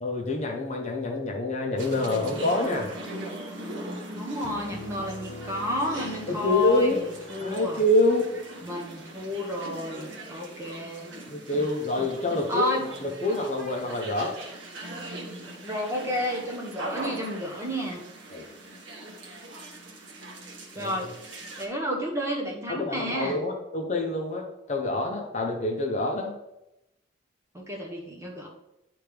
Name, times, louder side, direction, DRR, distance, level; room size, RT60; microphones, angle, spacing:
voice 1, 0.0-2.9 6.3-7.0 7.4-8.2 11.3-12.7 13.0-14.4 18.3-18.4 20.8-20.9 22.7-26.3, left 2 dB, 35° left, 1 dB, 0.8 m, -26 dB
sound 1, 1.8-21.7, right 1 dB, 70° right, 1.1 m, -40 dB
voice 2, 4.1-7.0 7.3-7.8 8.6-11.1 12.5-12.8 15.6-18.0 20.7-21.1 21.6-23.4 27.5-28.5, equal, 15° right, -1 dB, 1.0 m, -31 dB
Piano, 4.4-10.0, left 2 dB, 70° left, 0.6 m, -45 dB
9.7 x 3.4 x 3.4 m, 0.88 s
head